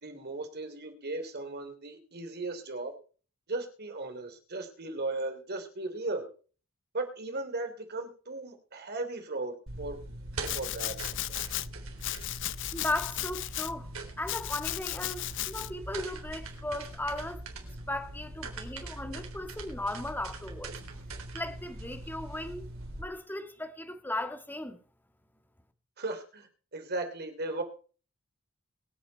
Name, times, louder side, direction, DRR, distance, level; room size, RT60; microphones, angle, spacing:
voice 1, 0.0-2.9 3.5-6.2 6.9-10.0 10.5-11.0 26.0-26.5 26.7-27.6, right 2 dB, 50° right, 3.1 m, -36 dB
sound 1, 9.7-23.0, right 2 dB, 75° right, 3.6 m, -42 dB
Domestic sounds home sounds, 10.4-11.7 12.0-13.7 14.3-15.7, left 15 dB, 60° left, 0.6 m, -35 dB
voice 2, 12.7-13.9 14.2-17.4 17.9-20.7 21.3-22.7 23.0-24.8, left 1 dB, 10° left, 1.7 m, -36 dB
22.5 x 8.6 x 4.5 m
head